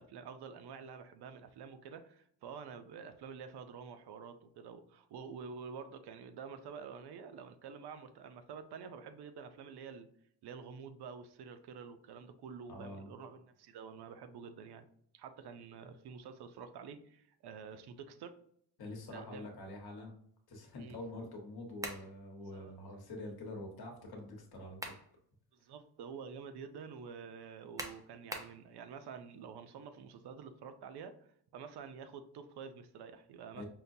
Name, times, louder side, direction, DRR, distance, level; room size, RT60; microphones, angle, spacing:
voice 1, 0.0-10.1 10.4-14.9 15.1-18.4 19.1-19.5 20.8-21.0 22.5-22.7 25.6-33.6, right 6 dB, 65° right, 9 dB, 0.5 m, -48 dB
voice 2, 12.7-13.1 18.8-20.2 20.5-24.9 33.5-33.7, left 1 dB, 60° left, 1 dB, 1.1 m, -46 dB
sound 1, 21.8-22.1 24.5-25.1 25.6-25.7 27.8-28.6, right 1 dB, 10° right, 0.4 m, -42 dB
5.5 x 2.2 x 2.6 m, 0.66 s
wide cardioid pair, 135°, 43 cm